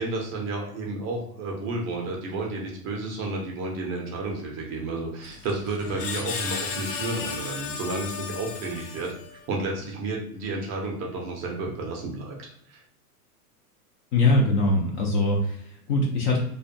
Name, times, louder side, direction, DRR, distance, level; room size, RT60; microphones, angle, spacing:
voice 1, 0.0-9.1 9.5-12.8, right 2 dB, 30° right, 0 dB, 0.5 m, -31 dB
Screech, 5.2-9.5, left 5 dB, 75° left, 0.7 m, -34 dB
voice 2, 14.1-16.4, left 2 dB, 30° left, -1 dB, 0.4 m, -22 dB
2.4 x 2.2 x 2.6 m, 0.69 s
hypercardioid pair, 115°, 46 cm